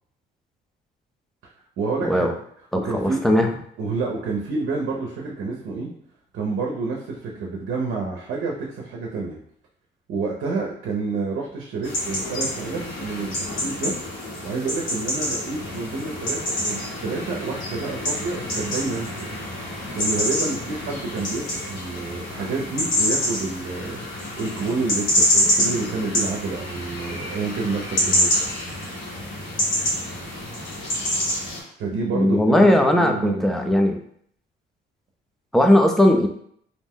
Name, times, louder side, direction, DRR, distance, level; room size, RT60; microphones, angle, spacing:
voice 1, 1.8-2.3 2.7-3.2 3.8-5.9 6.3-9.4 10.1-14.0 14.4-19.3 19.9-28.5 31.8-33.4, right 3 dB, 75° right, -2 dB, 0.6 m, -29 dB
voice 2, 2.9-3.5 32.1-34.0 35.5-36.3, left 1 dB, ahead, 3 dB, 0.4 m, -18 dB
sound 1, 11.8-31.6, left 1 dB, 75° left, 1.2 m, -26 dB
2.6 x 2.1 x 3.5 m, 0.65 s
cardioid pair, 90°, 20 cm